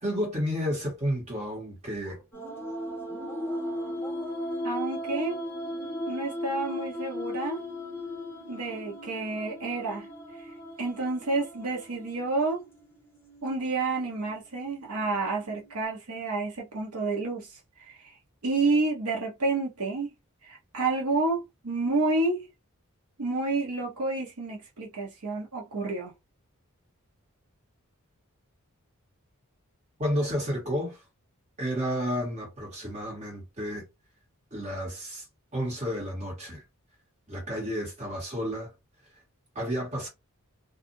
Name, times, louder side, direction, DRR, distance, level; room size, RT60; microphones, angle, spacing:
voice 1, 0.0-2.2 30.0-31.0 31.6-33.8 34.5-35.2 35.5-36.6 37.3-38.7 39.5-40.1, equal, 30° right, 1.5 m, -31 dB
sound 1, 2.3-15.8, left 1 dB, 10° left, 1.3 m, -37 dB
voice 2, 4.6-5.4 6.1-7.6 8.5-10.1 10.8-12.7 13.4-17.5 17.8-18.1 18.4-20.1 20.4-22.5 23.2-26.1, right 3 dB, 85° right, 0.8 m, -29 dB
2.6 x 2.5 x 2.6 m
head